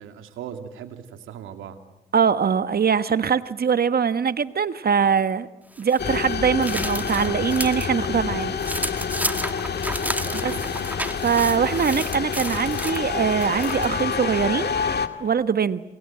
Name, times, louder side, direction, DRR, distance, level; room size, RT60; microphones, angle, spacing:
voice 1, 0.0-1.8 10.2-10.7, right 9 dB, 80° right, 7 dB, 2.6 m, -38 dB
voice 2, 2.1-5.5 5.8-8.6 10.4-10.5 11.2-14.7 15.2-15.8, right 6 dB, 50° right, 13 dB, 1.3 m, -22 dB
sound 1, 5.7-7.9 8.3-14.0, right 1 dB, 10° right, 2.0 m, -32 dB
sound 2, 6.0-15.1, left 6 dB, 55° left, 2.1 m, -28 dB
28.0 x 27.5 x 7.7 m, 0.98 s
hypercardioid pair, 45°, 20 cm